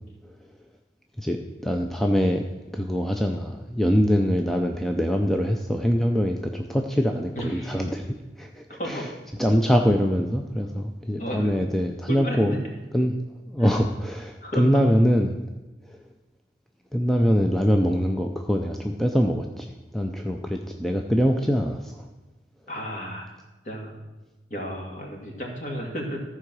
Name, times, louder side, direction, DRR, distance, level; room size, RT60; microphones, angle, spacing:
voice 1, 1.2-2.4 2.7-9.1 9.4-12.5 12.9-13.1 13.5-15.4 16.9-22.1, equal, ahead, 3 dB, 0.5 m, -23 dB
voice 2, 7.3-7.8 8.8-9.1 11.2-11.7 12.1-12.6 13.6-13.7 14.4-14.8 22.7-23.3 23.6-24.0 24.5-26.2, equal, 40° left, 0 dB, 2.2 m, -33 dB
14.5 x 4.8 x 6.1 m, 1.1 s
head